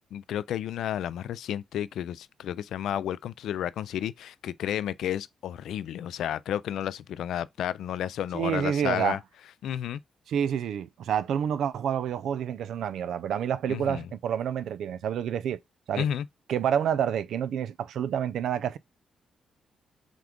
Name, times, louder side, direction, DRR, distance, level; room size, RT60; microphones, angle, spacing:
voice 1, 0.1-9.2 9.6-10.0 13.7-14.1 16.0-16.3, left 10 dB, 85° left, 0.3 m, -32 dB
voice 2, 8.3-9.2 10.3-15.6 15.9-16.1 16.5-18.8, right 9 dB, 80° right, 0.4 m, -28 dB
5.9 x 2.5 x 3.6 m
cardioid pair, 100°, 0 cm